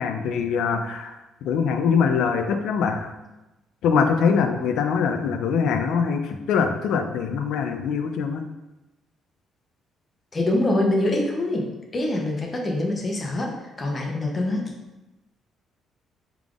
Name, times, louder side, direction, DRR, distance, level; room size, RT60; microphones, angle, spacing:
voice 1, 0.0-3.1 3.8-8.4, left 6 dB, 80° left, 6 dB, 0.3 m, -23 dB
voice 2, 10.3-11.7 11.9-14.7, left 1 dB, 30° left, 0 dB, 0.7 m, -24 dB
3.5 x 3.4 x 2.4 m, 1.0 s
cardioid pair, 110°, 0 cm